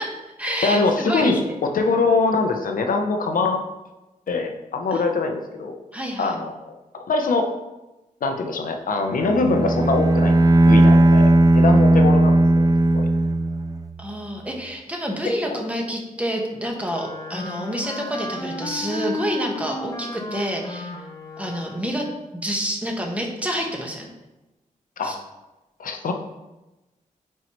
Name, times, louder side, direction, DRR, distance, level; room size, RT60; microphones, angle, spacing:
voice 1, 0.0-1.6 4.9-5.0 5.9-6.4 14.0-20.9 21.4-22.1 22.3-24.1 25.0-25.2, equal, 10° right, 0 dB, 1.2 m, -28 dB
voice 2, 0.6-3.6 4.3-5.8 6.2-7.5 8.2-10.3 10.6-12.7 12.9-13.1 15.5-15.6 25.0-25.2 25.8-26.1, left 3 dB, 75° left, 4 dB, 0.8 m, -23 dB
Bowed string instrument, 9.1-13.9, right 1 dB, 25° right, 0.4 m, -16 dB
Wind instrument woodwind instrument, 16.8-22.1, left 2 dB, 20° left, 0.9 m, -33 dB
9.3 x 4.6 x 3.1 m, 1.0 s
wide cardioid pair, 120°, 14 cm